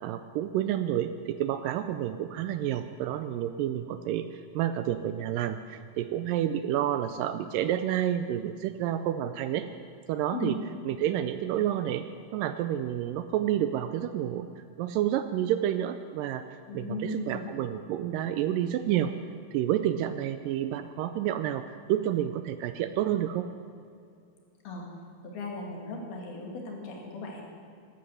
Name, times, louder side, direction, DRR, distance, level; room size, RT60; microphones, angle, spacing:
voice 1, 0.0-9.7 10.1-10.6 10.8-12.1 12.3-19.1 19.5-21.6 21.9-23.5, right 11 dB, 80° right, 10 dB, 2.0 m, -29 dB
voice 2, 16.7-17.5 24.6-24.9 25.2-27.4, left 1 dB, 80° left, -1 dB, 4.2 m, -36 dB
13.0 x 12.5 x 7.8 m, 2.4 s
omnidirectional pair, 4.3 m